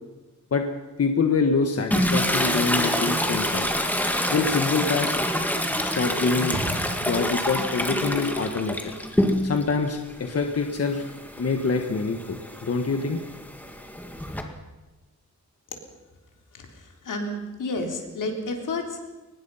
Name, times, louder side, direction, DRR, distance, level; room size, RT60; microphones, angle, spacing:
voice 1, 1.0-3.6 4.3-5.2 5.8-6.6 7.0-8.9 9.4-11.0 11.4-13.2, left 4 dB, 50° left, 5 dB, 1.5 m, -25 dB
Toilet flush, 1.9-9.7 10.1-14.4, equal, 5° left, 2.0 m, -27 dB
sound 1, 6.5-13.0 13.3-13.5, right 1 dB, 50° right, 3.3 m, -41 dB
voice 2, 16.5-19.1, left 2 dB, 85° left, 3 dB, 3.7 m, -31 dB
23.5 x 20.0 x 5.7 m, 1.1 s
wide cardioid pair, 160°, 31 cm